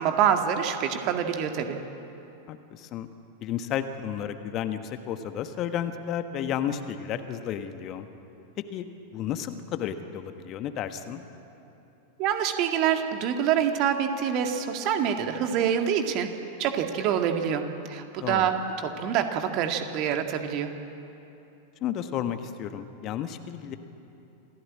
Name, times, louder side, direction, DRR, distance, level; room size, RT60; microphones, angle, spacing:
voice 1, 0.0-1.8 12.2-16.3 16.6-17.6 17.9-20.7, right 8 dB, 40° right, 5 dB, 2.0 m, -26 dB
voice 2, 2.5-3.1 3.4-8.1 8.7-8.8 9.1-11.2 18.2-18.5 21.8-23.8, left 9 dB, 35° left, 9 dB, 1.4 m, -32 dB
27.5 x 16.5 x 8.7 m, 2.9 s
figure-of-eight pair, 90°, 0 cm